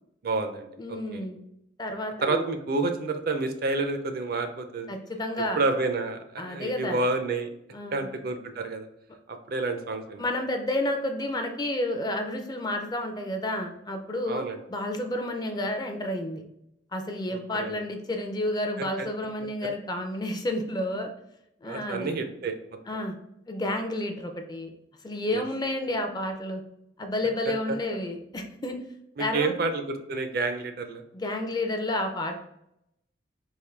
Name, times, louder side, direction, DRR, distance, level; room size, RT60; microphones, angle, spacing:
voice 1, 0.2-1.2 2.2-4.9 5.6-7.5 7.9-8.9 9.3-10.3 14.3-14.6 17.3-17.8 18.8-19.1 21.6-22.6 25.3-25.4 27.4-27.8 29.2-31.0, right 3 dB, 55° right, 7 dB, 0.4 m, -29 dB
voice 2, 0.8-1.4 1.8-2.4 4.9-5.6 6.4-7.0 7.7-8.1 10.2-14.4 14.7-16.4 16.9-21.1 21.6-22.2 22.9-23.1 23.5-24.7 25.0-26.6 27.0-28.8 29.2-29.5 31.1-32.4, left 1 dB, 20° left, 5 dB, 0.4 m, -30 dB
3.6 x 2.5 x 3.2 m, 0.79 s
head